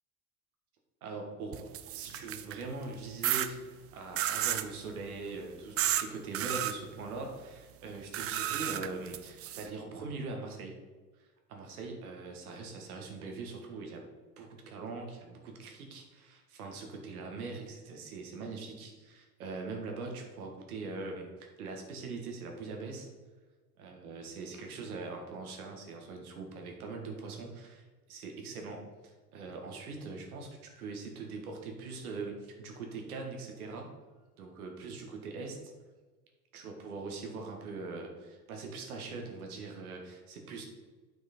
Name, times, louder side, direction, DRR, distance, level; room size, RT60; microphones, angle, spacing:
voice 1, 1.0-10.8 11.5-14.1 14.4-23.1 23.8-28.8 29.3-33.9 34.4-35.7 36.5-40.6, right 3 dB, 75° right, 2 dB, 1.6 m, -42 dB
sound 1, 1.5-2.6 3.2-3.5 4.2-4.7 5.8-6.0 6.3-6.7 8.1-9.7, right 12 dB, 35° right, 0.5 m, -32 dB
8.7 x 5.1 x 4.3 m, 1.3 s
figure-of-eight pair, 65°, 44 cm